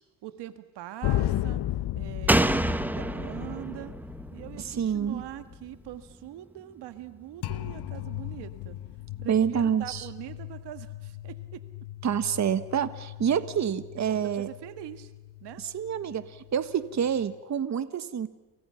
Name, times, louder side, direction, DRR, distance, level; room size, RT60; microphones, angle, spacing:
voice 1, 0.2-1.6 1.9-4.0 4.3-8.8 9.2-11.6 14.1-15.1 15.4-15.6, right 13 dB, 90° right, 11 dB, 1.6 m, -42 dB
sound 1, 1.0-6.1 7.4-17.4, left 14 dB, 75° left, 1.0 m, -36 dB
Slam, 2.3-5.8 6.1-6.2, right 1 dB, 5° right, 0.9 m, -28 dB
voice 2, 4.6-5.2 9.2-10.1 12.0-14.5 15.6-18.3, right 8 dB, 45° right, 12 dB, 1.3 m, -27 dB
29.0 x 28.5 x 5.7 m, 1.1 s
cardioid pair, 100°, 40 cm